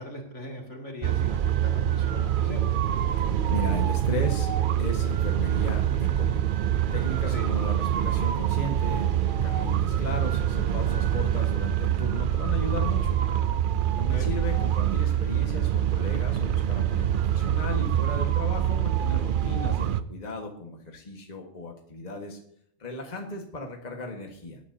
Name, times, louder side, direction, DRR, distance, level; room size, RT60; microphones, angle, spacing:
voice 1, 0.0-2.8 7.3-7.5 14.1-14.3, left 1 dB, 70° left, 0 dB, 2.8 m, -40 dB
sound 1, 1.0-20.0, right 10 dB, 55° right, 0.6 m, -25 dB
voice 2, 3.5-4.5 4.8-6.5 6.9-13.2 14.0-22.4 22.8-24.6, left 2 dB, 35° left, 1 dB, 1.6 m, -36 dB
19.0 x 10.0 x 2.7 m, 0.63 s
omnidirectional pair, 1.3 m